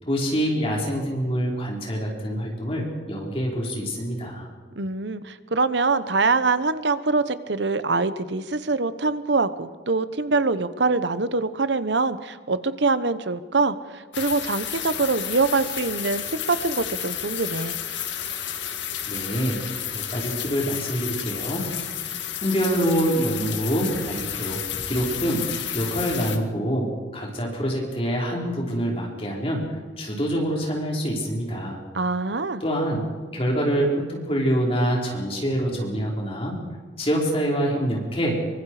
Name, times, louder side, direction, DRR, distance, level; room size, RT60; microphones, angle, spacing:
voice 1, 0.1-4.5 19.1-19.6 19.9-21.6 22.4-25.5 25.7-31.8 32.6-33.0 33.3-36.5 37.0-38.4, equal, 30° left, -2 dB, 5.0 m, -26 dB
voice 2, 4.8-17.8 31.9-32.6, right 3 dB, 75° right, 13 dB, 1.0 m, -24 dB
sound 1, 14.1-26.4, left 9 dB, 80° left, 1.9 m, -31 dB
25.5 x 24.0 x 5.0 m, 1.5 s
head